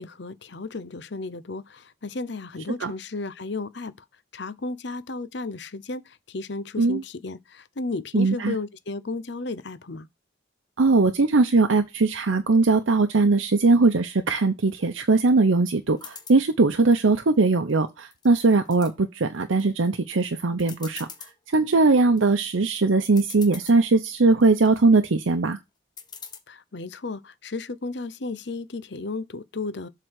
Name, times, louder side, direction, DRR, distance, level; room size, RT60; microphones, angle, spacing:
voice 1, 0.0-4.0 4.3-10.1 26.5-29.9, left 3 dB, 60° left, 0.7 m, -34 dB
voice 2, 8.1-8.5 10.8-21.1 21.5-25.6, right 3 dB, 85° right, 0.7 m, -20 dB
sound 1, 16.0-16.4 16.9-17.7 18.1-18.9 19.4-19.9 20.2-20.3 20.6-21.3 21.9-22.2 22.8-22.9 23.0-23.8 24.3-24.8 26.0-26.4, left 6 dB, 20° left, 1.2 m, -43 dB
7.7 x 3.8 x 6.3 m
head